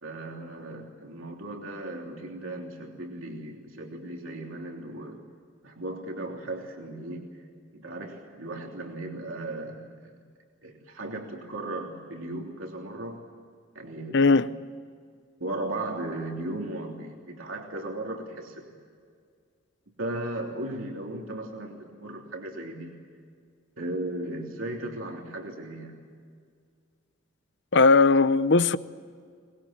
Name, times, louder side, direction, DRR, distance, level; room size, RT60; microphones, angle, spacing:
voice 1, 0.0-5.2 5.6-7.4 7.7-10.2 10.6-13.2 13.7-14.2 15.4-18.7 20.0-23.0 23.8-25.9, right 1 dB, 75° right, 3.2 m, -36 dB
voice 2, 14.1-14.5 27.7-28.8, left 3 dB, 60° left, 0.8 m, -18 dB
24.0 x 21.0 x 8.9 m
head